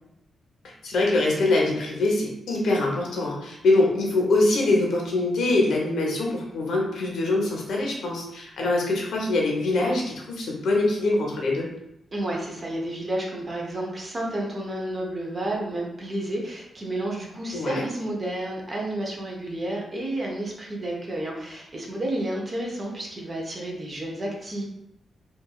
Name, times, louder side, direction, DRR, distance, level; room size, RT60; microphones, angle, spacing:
voice 1, 0.6-11.7 17.5-17.8, left 2 dB, 70° left, -1 dB, 0.7 m, -24 dB
voice 2, 12.1-24.7, right 1 dB, 25° right, -1 dB, 0.5 m, -31 dB
3.0 x 2.3 x 2.3 m, 0.84 s
wide cardioid pair, 165°, 0 cm